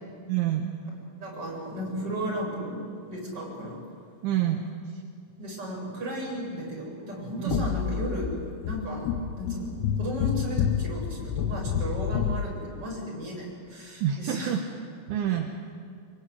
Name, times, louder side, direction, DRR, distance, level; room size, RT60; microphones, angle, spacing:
voice 1, 0.3-0.7 4.2-5.0 7.4-7.7 14.0-14.6 15.1-15.5, right 10 dB, 70° right, 2 dB, 3.7 m, -27 dB
voice 2, 1.2-2.8 3.1-3.8 5.4-8.3 8.6-9.1 9.4-14.6 15.3-15.4, equal, 20° right, -2 dB, 8.4 m, -34 dB
sound 1, 7.5-12.5, left 8 dB, 75° left, 3.2 m, -29 dB
26.0 x 23.0 x 9.9 m, 2.2 s
omnidirectional pair, 5.8 m